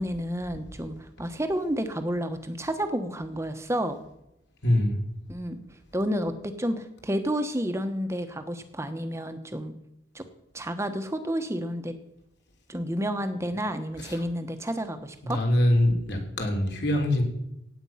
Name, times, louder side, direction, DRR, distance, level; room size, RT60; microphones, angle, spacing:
voice 1, 0.0-4.0 5.3-5.6 5.9-9.7 10.1-10.2 10.5-11.9 12.7-15.4, equal, 15° right, 8 dB, 1.2 m, -30 dB
voice 2, 4.6-5.0 14.0-14.2 15.2-17.2, left 1 dB, 55° left, 2 dB, 3.4 m, -24 dB
17.0 x 9.1 x 5.8 m, 0.83 s
head